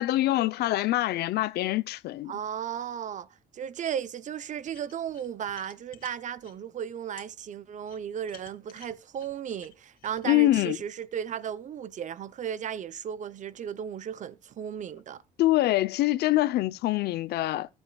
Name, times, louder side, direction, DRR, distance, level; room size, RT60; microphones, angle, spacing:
voice 1, 0.0-2.3 10.2-10.8 15.4-17.7, left 16 dB, 70° left, 0.7 m, -25 dB
voice 2, 2.3-3.3 3.5-15.2, right 9 dB, 45° right, 0.8 m, -35 dB
sound 1, 4.7-6.6 7.2-7.3 7.8-10.2, left 9 dB, 55° left, 2.9 m, -53 dB
20.5 x 8.0 x 2.4 m
cardioid pair, 110°, 17 cm